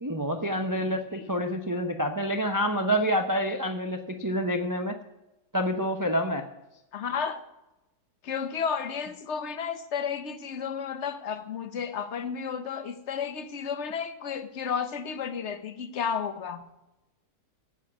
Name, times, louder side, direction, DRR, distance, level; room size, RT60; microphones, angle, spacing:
voice 1, 0.0-5.0 5.5-6.4, equal, 25° right, 5 dB, 0.4 m, -27 dB
voice 2, 0.7-1.2 6.9-7.4 8.2-16.6, left 6 dB, 50° left, 10 dB, 1.1 m, -32 dB
9.9 x 8.4 x 7.1 m, 0.96 s
omnidirectional pair, 1.7 m